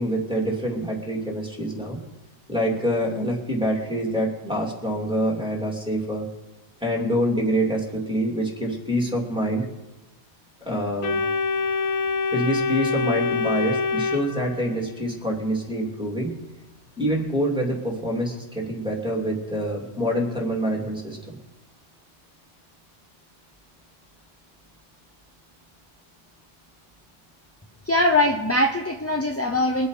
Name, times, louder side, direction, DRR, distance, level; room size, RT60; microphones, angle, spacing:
voice 1, 0.0-2.0 2.5-6.3 6.8-9.6 10.6-11.2 12.3-16.3 17.0-21.4, equal, 5° right, -2 dB, 2.7 m, -26 dB
Organ, 11.0-15.0, left 4 dB, 75° left, 1.3 m, -25 dB
voice 2, 27.8-29.9, left 1 dB, 15° left, 3 dB, 0.6 m, -21 dB
23.0 x 8.0 x 4.9 m, 1.0 s
omnidirectional pair, 1.3 m